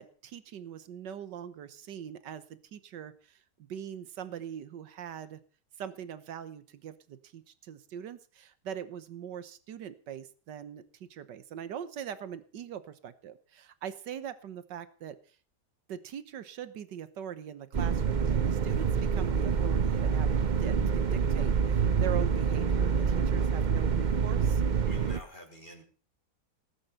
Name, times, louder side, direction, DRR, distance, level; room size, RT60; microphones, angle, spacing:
voice 1, 0.0-2.4 2.7-3.1 3.7-5.4 5.8-15.2 15.9-20.3 20.6-24.6, right 9 dB, 85° right, 13 dB, 1.8 m, -42 dB
sound 1, 17.7-25.2, right 6 dB, 45° right, 0.6 m, -27 dB
voice 2, 24.8-25.8, left 1 dB, 25° left, 1 dB, 3.4 m, -48 dB
19.5 x 9.9 x 5.7 m, 0.40 s
omnidirectional pair, 1.8 m